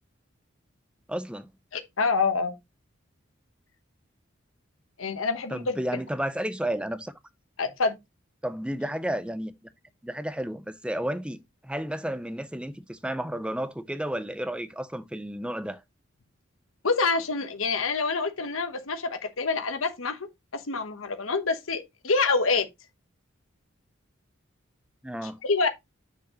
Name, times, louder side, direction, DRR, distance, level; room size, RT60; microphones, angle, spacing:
voice 1, 1.1-1.5 5.5-7.1 8.4-9.5 10.0-11.4 11.6-15.8 25.0-25.4, right 1 dB, 5° right, 0.6 m, -32 dB
voice 2, 1.7-2.5 5.0-5.7 7.6-8.0 16.8-20.2 20.5-22.7 25.2-25.7, left 4 dB, 85° left, 1.1 m, -26 dB
8.5 x 6.2 x 3.0 m
head